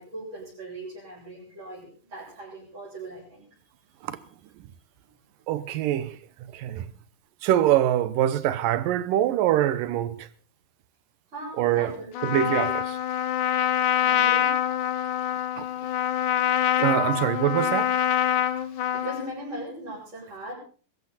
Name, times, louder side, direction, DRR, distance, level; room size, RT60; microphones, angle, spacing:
voice 1, 0.0-3.5 11.3-12.7 14.0-14.6 16.8-17.3 18.6-20.6, right 1 dB, 35° right, 8.2 m, -39 dB
voice 2, 5.5-6.2 6.5-6.9 7.4-10.3 11.6-12.0 12.2-12.8 15.6-15.7 16.8-17.9, right 12 dB, 80° right, 2.6 m, -24 dB
Trumpet, 12.1-19.3, left 11 dB, 70° left, 2.4 m, -25 dB
22.5 x 14.0 x 4.2 m
omnidirectional pair, 3.9 m